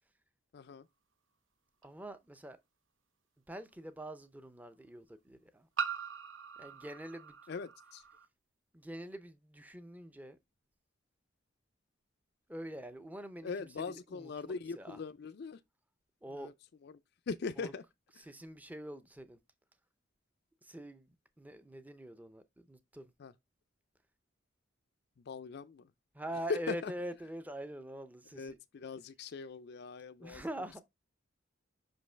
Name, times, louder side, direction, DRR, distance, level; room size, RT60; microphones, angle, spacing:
voice 1, 0.5-0.9 7.5-8.0 13.4-15.6 16.3-16.5 16.8-17.0 17.3-17.8 18.2-18.3 23.2-23.3 25.3-25.9 26.5-26.9 28.4-30.4, left 4 dB, 55° left, 0.4 m, -40 dB
voice 2, 1.8-2.6 3.5-5.7 6.6-7.4 8.7-10.4 12.5-15.0 16.2-16.5 17.6-17.7 18.2-19.4 20.6-23.1 26.1-28.6 30.2-30.8, right 1 dB, 10° right, 0.5 m, -45 dB
sound 1, 1.8-1.9 3.6-3.7 5.8-8.3, right 6 dB, 75° right, 0.8 m, -41 dB
5.6 x 5.2 x 3.3 m
head